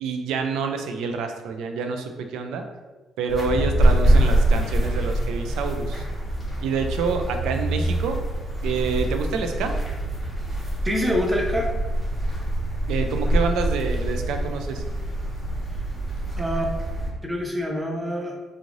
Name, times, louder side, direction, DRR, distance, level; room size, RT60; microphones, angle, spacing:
voice 1, 0.0-2.6 3.2-6.0 6.6-8.2 8.6-9.7 12.9-14.8, right 5 dB, 90° right, 5 dB, 0.4 m, -27 dB
sound 1, 3.3-17.1, right 1 dB, ahead, 1.4 m, -24 dB
voice 2, 10.8-11.7 16.4-16.6 17.2-18.3, equal, 20° right, 0 dB, 0.7 m, -25 dB
3.6 x 3.1 x 2.5 m, 1.2 s
cardioid pair, 90°, 0 cm